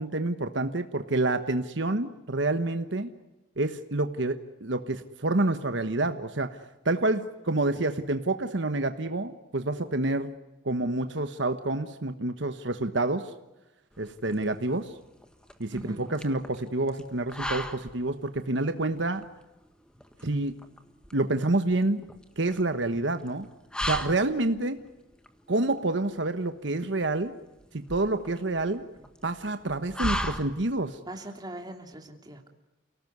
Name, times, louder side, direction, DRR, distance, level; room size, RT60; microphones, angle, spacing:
voice 1, 0.0-3.1 3.6-10.4 10.6-13.3 14.0-15.0 15.6-19.2 20.2-20.6 21.1-22.0 22.4-23.5 23.8-24.8 25.5-27.3 27.7-28.8 29.2-31.0, right 2 dB, 65° right, 9 dB, 1.3 m, -28 dB
sound 1, 13.9-31.0, equal, 5° left, 1.6 m, -38 dB
voice 2, 31.1-32.5, right 1 dB, 20° right, 4 dB, 3.0 m, -41 dB
29.5 x 18.5 x 9.6 m, 1.0 s
head